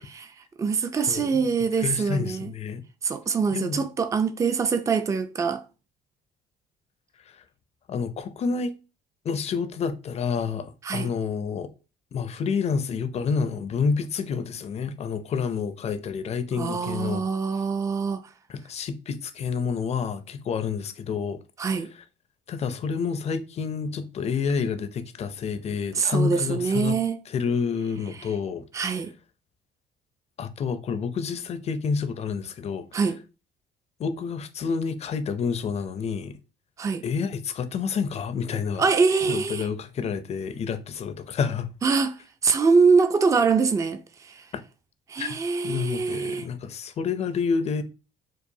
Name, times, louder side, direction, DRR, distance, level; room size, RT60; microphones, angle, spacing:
voice 1, 0.0-2.5 3.0-5.6 10.8-11.1 16.6-18.3 21.6-21.9 25.9-27.2 28.1-28.3 28.7-29.1 32.9-33.2 36.8-37.0 38.8-39.7 41.8-44.5 45.1-46.5, right 5 dB, 20° right, 0.4 m, -24 dB
voice 2, 1.1-1.4 1.8-2.8 3.5-3.8 7.9-8.8 9.2-11.7 12.1-17.2 18.5-21.4 22.5-27.0 27.3-28.7 30.4-32.9 34.0-36.4 37.0-38.9 39.2-41.7 44.5-44.6 45.2-45.3 45.6-47.8, left 5 dB, 40° left, 0.5 m, -29 dB
4.7 x 2.3 x 2.6 m
cardioid pair, 110°, 17 cm